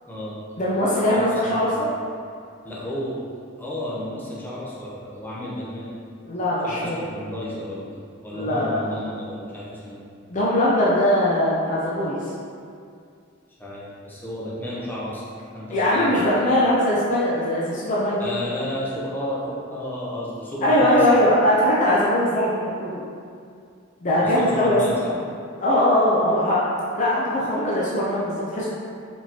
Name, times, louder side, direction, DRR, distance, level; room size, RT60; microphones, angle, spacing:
voice 1, 0.1-0.4 1.1-1.7 2.6-3.2 3.6-5.9 6.6-10.0 13.6-15.2 15.5-16.3 18.2-21.2 24.2-25.2, left 1 dB, 10° left, -7 dB, 0.9 m, -32 dB
voice 2, 0.6-1.7 6.2-7.0 8.3-8.9 10.3-12.2 15.7-18.3 20.6-23.0 24.0-24.8 25.6-26.6 27.0-28.7, left 1 dB, 40° left, -7 dB, 0.6 m, -20 dB
4.7 x 3.7 x 2.9 m, 2.3 s
head